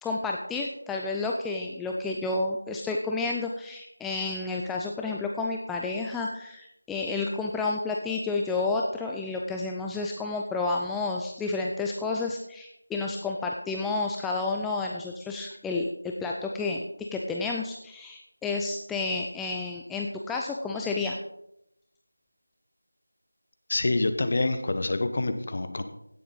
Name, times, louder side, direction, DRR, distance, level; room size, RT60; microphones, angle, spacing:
voice 1, 0.0-16.9 17.1-21.2, left 3 dB, 5° left, 0 dB, 0.3 m, -30 dB
voice 2, 23.7-25.8, left 2 dB, 40° left, 9 dB, 1.1 m, -26 dB
16.5 x 7.6 x 4.0 m, 0.82 s
figure-of-eight pair, 170°, 0 cm